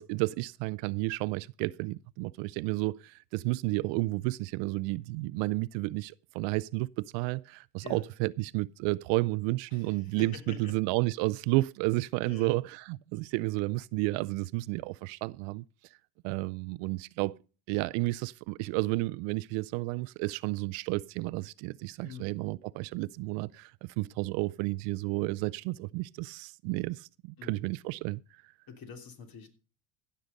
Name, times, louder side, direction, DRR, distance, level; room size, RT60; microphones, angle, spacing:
voice 1, 0.0-15.6 16.2-17.3 17.7-28.2, right 22 dB, 70° right, 0.5 m, -31 dB
voice 2, 9.7-10.7 12.3-12.6 22.0-22.3 27.4-27.6 28.7-29.5, left 5 dB, 50° left, 3.2 m, -45 dB
16.0 x 6.7 x 5.1 m
supercardioid pair, 95°, 47 cm